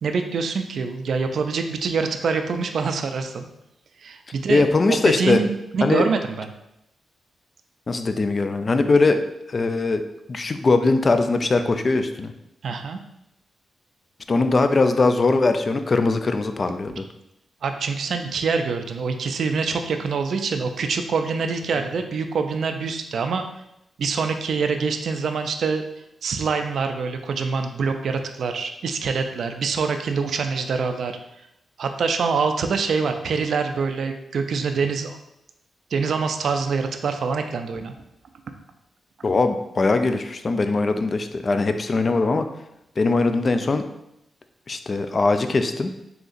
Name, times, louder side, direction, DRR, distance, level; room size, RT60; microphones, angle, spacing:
voice 1, 0.0-3.5 4.0-6.5 12.6-13.0 17.6-23.4 24.0-25.8 26.2-31.1 31.8-35.2 35.9-37.9 39.2-39.3, right 5 dB, 70° right, 6 dB, 0.3 m, -25 dB
voice 2, 4.5-5.4 5.8-6.1 7.9-9.2 9.5-10.0 10.3-12.3 14.3-17.1 39.2-42.5 43.0-43.8 44.7-45.9, left 3 dB, 40° left, 8 dB, 0.3 m, -21 dB
3.9 x 2.8 x 2.5 m, 0.84 s
cardioid pair, 75°, 0 cm